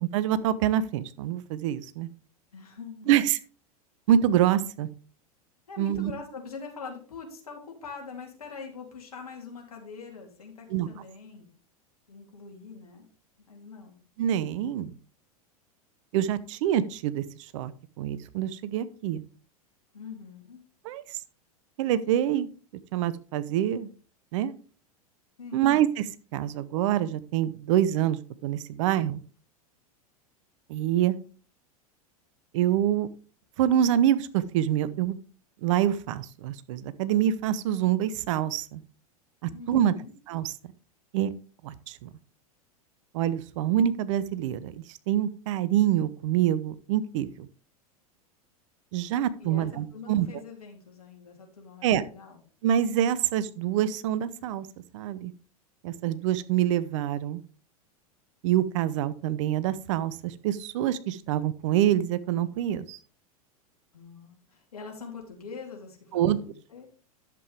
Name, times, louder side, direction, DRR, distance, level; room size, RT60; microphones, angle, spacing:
voice 1, 0.1-2.1 3.1-3.4 4.1-4.9 5.8-6.1 10.7-10.9 14.2-14.9 16.1-17.2 17.5-17.7 18.0-19.2 20.8-21.0 21.8-22.5 22.9-23.9 24.3-24.5 25.5-26.1 26.3-29.2 30.7-31.2 32.5-33.1 33.6-35.2 35.6-38.8 39.4-39.9 40.3-40.5 41.1-41.3 41.6-42.1 43.1-44.7 45.1-47.5 48.9-50.3 51.8-52.0 52.6-54.7 54.9-55.3 55.8-57.4 58.4-63.0 66.1-66.4, right 11 dB, 55° right, 15 dB, 0.8 m, -26 dB
voice 2, 2.5-3.1 5.7-11.5 12.1-13.1 13.5-14.0 19.9-20.6 25.4-25.8 39.5-40.1 49.4-52.4 63.9-66.9, left 5 dB, 75° left, 1 dB, 3.2 m, -43 dB
11.0 x 7.6 x 3.5 m, 0.40 s
figure-of-eight pair, 90°, 19 cm